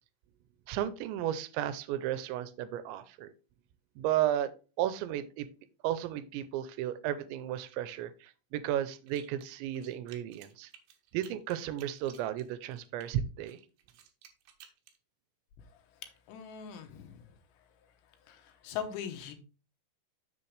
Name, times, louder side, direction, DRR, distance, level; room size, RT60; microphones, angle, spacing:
voice 1, 0.7-3.3 4.0-4.5 4.8-5.5 5.8-10.7 11.1-13.6, right 11 dB, 90° right, 2.9 m, -34 dB
sound 1, 9.1-9.5 9.7-13.1 13.5-15.0, right 9 dB, 70° right, 2.8 m, -55 dB
voice 2, 15.7-17.2 18.2-19.3, left 8 dB, 80° left, 3.3 m, -41 dB
7.5 x 7.0 x 3.3 m
omnidirectional pair, 5.1 m